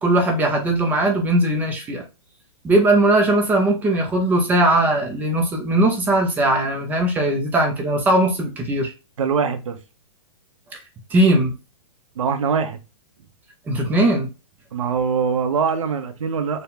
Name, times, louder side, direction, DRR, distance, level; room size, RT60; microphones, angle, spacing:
voice 1, 0.0-2.0 2.6-8.9 11.1-11.5 13.7-14.3, right 1 dB, 10° right, 0.5 m, -19 dB
voice 2, 9.2-9.8 12.2-12.8 14.7-16.6, right 6 dB, 90° right, 0.9 m, -22 dB
4.2 x 2.3 x 3.6 m
hypercardioid pair, 160°, 17 cm